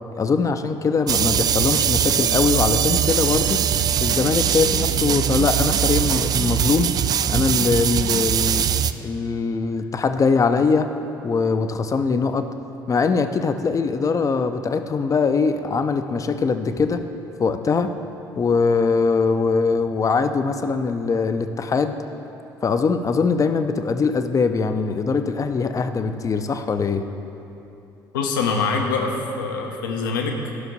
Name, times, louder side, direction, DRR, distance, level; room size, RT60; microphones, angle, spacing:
voice 1, 0.2-3.6 4.0-6.9 7.3-8.6 9.0-10.9 11.2-12.5 12.9-17.0 17.4-17.9 18.4-22.0 22.6-27.0, left 4 dB, 30° left, 9 dB, 0.6 m, -22 dB
sound 1, 1.1-8.9, right 9 dB, 35° right, 0.4 m, -21 dB
voice 2, 28.1-30.4, left 4 dB, 75° left, 2 dB, 0.8 m, -24 dB
11.5 x 5.9 x 5.2 m, 2.9 s
figure-of-eight pair, 50°, 11 cm